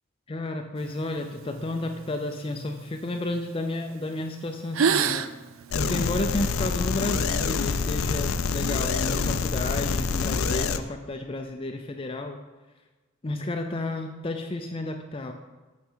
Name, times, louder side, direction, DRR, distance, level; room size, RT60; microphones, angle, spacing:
voice 1, 0.3-5.2 5.8-12.4 13.2-15.3, left 2 dB, 25° left, 4 dB, 0.5 m, -32 dB
sound 1, 0.8-3.5 4.1-4.3 4.6-6.6, right 6 dB, 75° right, 0.5 m, -30 dB
sound 2, 5.7-10.8, left 5 dB, 90° left, 0.5 m, -26 dB
8.8 x 5.8 x 5.6 m, 1.2 s
head